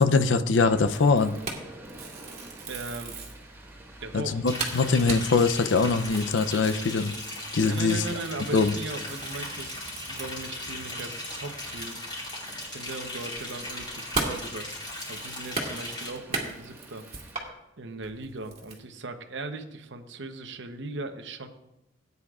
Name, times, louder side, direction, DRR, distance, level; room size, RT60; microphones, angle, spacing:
voice 1, 0.0-1.4 4.1-7.1 7.5-8.0 8.5-8.7, left 4 dB, 75° left, 10 dB, 0.6 m, -22 dB
sound 1, 0.6-17.4, right 1 dB, 15° right, 1.6 m, -50 dB
sound 2, 0.9-3.4 3.9-4.0 4.3-4.4 4.6-11.5 11.8-11.9 12.2-17.5 18.0-18.8, right 3 dB, 35° right, 2.1 m, -37 dB
voice 2, 2.7-3.2 4.0-4.4 7.6-12.0 12.3-14.7 15.1-17.0 17.8-21.5, right 2 dB, 70° right, 7 dB, 0.9 m, -38 dB
Liquid, 4.5-16.1, left 1 dB, 25° left, 4.1 m, -38 dB
17.5 x 9.6 x 2.4 m, 0.90 s
head